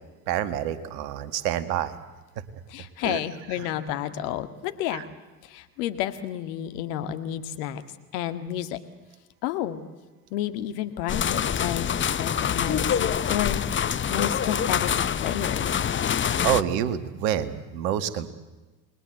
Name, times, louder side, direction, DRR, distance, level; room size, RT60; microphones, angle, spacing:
voice 1, 0.3-2.0 3.0-3.2 3.6-3.7 4.9-5.1 16.4-18.3, right 10 dB, 70° right, 12 dB, 2.1 m, -27 dB
voice 2, 2.7-5.0 5.4-7.8 8.1-8.8 9.4-9.8 10.3-11.9 12.2-13.6 14.1-15.7, left 11 dB, 65° left, 10 dB, 2.1 m, -31 dB
sound 1, 11.1-16.6, left 8 dB, 25° left, 0.9 m, -25 dB
28.5 x 21.0 x 8.0 m, 1.2 s
hypercardioid pair, 70°, 49 cm